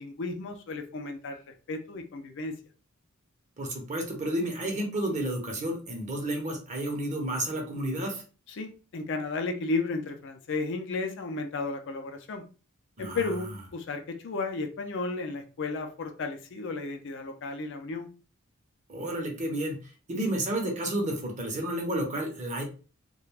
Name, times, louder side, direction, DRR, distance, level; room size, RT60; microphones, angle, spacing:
voice 1, 0.0-1.4 1.7-2.5 8.6-12.4 13.0-18.1, left 3 dB, 60° left, 5 dB, 0.4 m, -33 dB
voice 2, 3.6-8.2 13.0-13.2 18.9-19.8 20.1-22.6, right 1 dB, 35° right, 2 dB, 0.7 m, -31 dB
2.4 x 2.2 x 3.2 m, 0.36 s
head